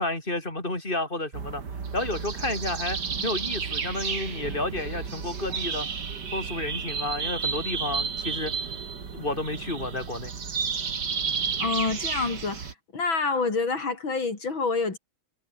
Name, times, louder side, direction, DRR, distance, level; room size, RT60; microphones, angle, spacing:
voice 1, 0.0-1.6 1.9-5.9 6.3-8.5 9.1-10.3, left 2 dB, 25° left, 6.5 m, -31 dB
sound 1, 1.3-12.7, right 6 dB, 60° right, 2.8 m, -32 dB
voice 2, 11.6-12.7 12.9-15.0, left 4 dB, 80° left, 4.7 m, -27 dB
omnidirectional pair, 2.1 m